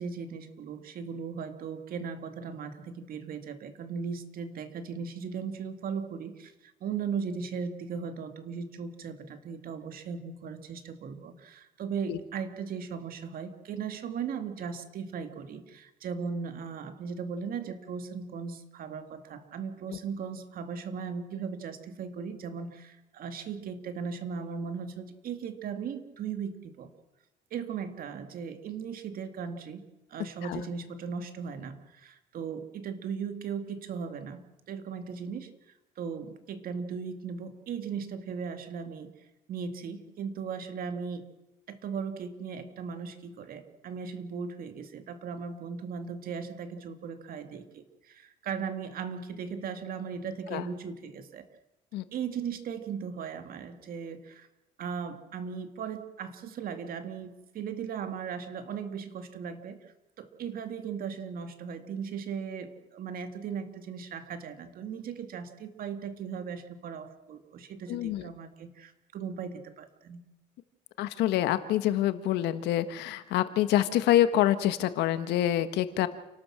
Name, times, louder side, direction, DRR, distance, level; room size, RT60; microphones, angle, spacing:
voice 1, 0.0-26.9 27.5-29.8 30.1-34.4 34.7-35.5 36.0-39.1 39.5-41.3 41.7-51.4 52.1-54.5 54.8-59.8 60.2-70.2, right 6 dB, 60° right, 8 dB, 2.3 m, -37 dB
voice 2, 67.9-68.3 71.0-76.1, left 12 dB, 85° left, 12 dB, 1.4 m, -26 dB
29.0 x 12.5 x 7.5 m, 1.0 s
cardioid pair, 110°, 17 cm